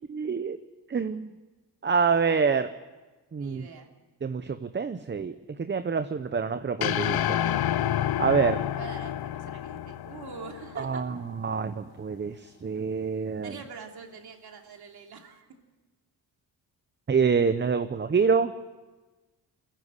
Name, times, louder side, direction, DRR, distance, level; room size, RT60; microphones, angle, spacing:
voice 1, 0.1-0.6 0.9-1.3 1.8-2.7 3.3-3.7 4.2-7.4 8.2-8.6 10.8-13.5 17.1-18.5, right 5 dB, 25° right, 10 dB, 0.8 m, -26 dB
voice 2, 3.4-3.9 8.8-11.0 13.4-15.5, right 5 dB, 65° right, 3 dB, 3.0 m, -44 dB
sound 1, 6.8-11.2, left 11 dB, 65° left, 0.7 m, -29 dB
22.5 x 15.0 x 9.8 m, 1.2 s
cardioid pair, 100°, 40 cm